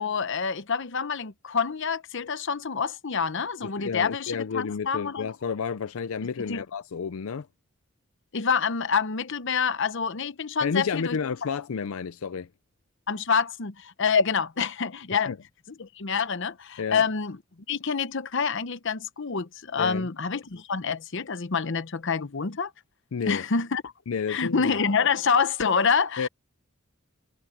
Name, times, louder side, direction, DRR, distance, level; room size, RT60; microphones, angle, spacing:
voice 1, 0.0-5.3 6.4-6.6 8.3-11.2 13.1-15.3 15.8-17.4 17.7-22.7 23.3-23.9 24.3-26.3, left 5 dB, 60° left, 0.8 m, -27 dB
voice 2, 3.6-7.5 10.6-12.5 15.3-15.4 16.8-17.0 19.8-20.1 23.1-23.4 24.1-24.7 26.2-26.3, left 6 dB, 80° left, 0.5 m, -31 dB
head